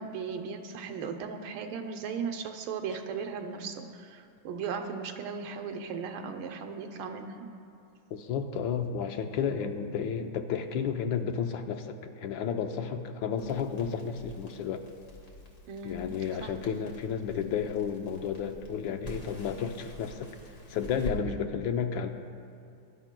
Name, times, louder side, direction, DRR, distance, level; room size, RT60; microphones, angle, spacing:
voice 1, 0.0-7.5 15.7-16.5 21.3-21.4, right 5 dB, 85° right, 5 dB, 1.7 m, -37 dB
voice 2, 8.1-14.9 15.8-20.3 20.7-22.1, left 7 dB, 75° left, 6 dB, 1.4 m, -32 dB
Crackle, 13.3-21.2, right 1 dB, 40° left, 1.7 m, -46 dB
22.0 x 11.5 x 2.2 m, 2.5 s
omnidirectional pair, 2.2 m